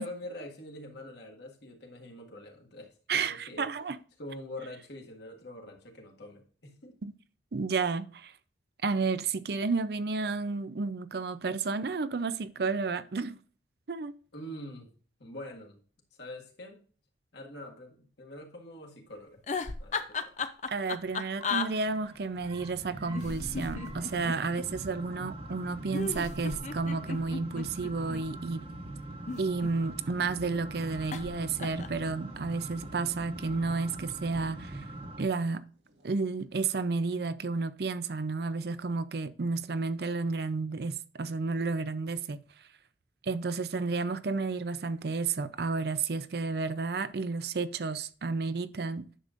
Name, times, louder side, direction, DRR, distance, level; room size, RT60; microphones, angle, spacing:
voice 1, 0.0-3.7 4.2-7.0 14.3-14.9 15.2-15.8 16.1-16.8 17.3-19.4 19.8-20.3, left 1 dB, 70° left, 1.8 m, -44 dB
voice 2, 3.1-4.0 7.0-7.1 7.5-8.3 8.8-13.4 13.9-14.1 20.7-28.6 29.4-34.8 35.2-35.6 36.0-42.4 43.2-49.2, right 4 dB, 60° right, 0.5 m, -31 dB
sound 1, 19.4-21.7 23.1-24.7 25.9-28.2 29.1-30.1 31.1-31.3 31.6-32.0, left 5 dB, 40° left, 0.5 m, -35 dB
sound 2, 21.2-35.2, right 1 dB, 30° right, 1.2 m, -43 dB
Writing, 30.6-36.5, equal, 85° right, 1.8 m, -60 dB
10.0 x 6.6 x 2.5 m
head